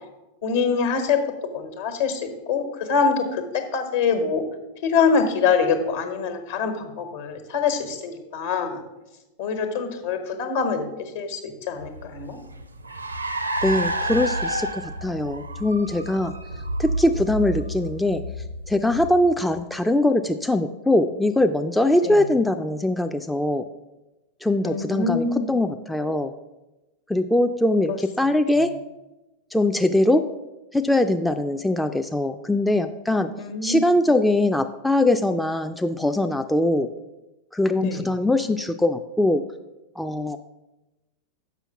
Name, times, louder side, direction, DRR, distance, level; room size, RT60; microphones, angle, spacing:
voice 1, 0.4-1.2 1.5-4.4 4.8-8.8 9.4-10.9 11.1-12.4 22.0-22.2 24.6-25.5 27.9-28.0 33.4-33.8 37.8-38.1, left 5 dB, 60° left, 7 dB, 1.2 m, -24 dB
Car, 11.8-19.6, right 1 dB, 80° right, 0.5 m, -30 dB
voice 2, 13.6-16.3 16.8-18.2 18.7-23.6 24.4-26.3 27.1-28.7 29.5-30.3 30.7-33.3 33.6-36.9 37.5-39.4 40.0-40.4, left 1 dB, 5° left, 7 dB, 0.3 m, -22 dB
6.9 x 5.6 x 5.7 m, 1.0 s
figure-of-eight pair, 90°, 0 cm